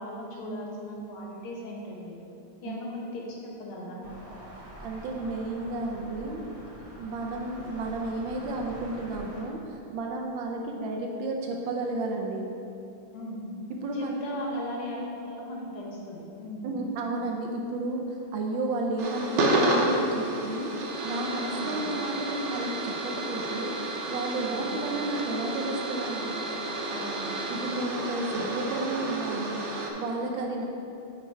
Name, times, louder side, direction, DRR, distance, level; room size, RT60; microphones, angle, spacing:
voice 1, 0.0-2.2 2.6-4.1 13.1-13.5 13.9-16.7 21.5-21.8 24.3-24.7 26.9-27.3, left 1 dB, 80° left, -2 dB, 2.0 m, -38 dB
sound 1, 4.0-9.4, right 1 dB, 25° right, 0.7 m, -45 dB
voice 2, 4.8-6.5 7.0-12.5 13.8-14.4 16.6-26.4 27.5-30.6, right 2 dB, 70° right, 1 dB, 1.3 m, -32 dB
sound 2, 19.0-29.9, right 2 dB, 85° right, 0.6 m, -30 dB
9.4 x 3.6 x 4.5 m, 2.7 s
omnidirectional pair, 2.4 m